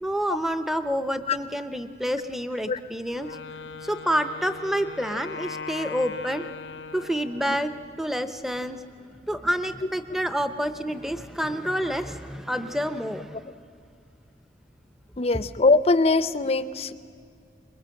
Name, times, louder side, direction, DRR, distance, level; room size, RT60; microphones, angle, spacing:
voice 1, 0.0-3.3 3.8-6.5 6.9-7.7 8.0-8.8 9.2-13.5, equal, ahead, 10 dB, 0.7 m, -28 dB
Wind instrument woodwind instrument, 3.1-8.0, left 4 dB, 80° left, 0.7 m, -39 dB
voice 2, 15.2-16.9, left 3 dB, 35° left, 14 dB, 0.6 m, -21 dB
23.0 x 21.0 x 7.7 m, 2.2 s
head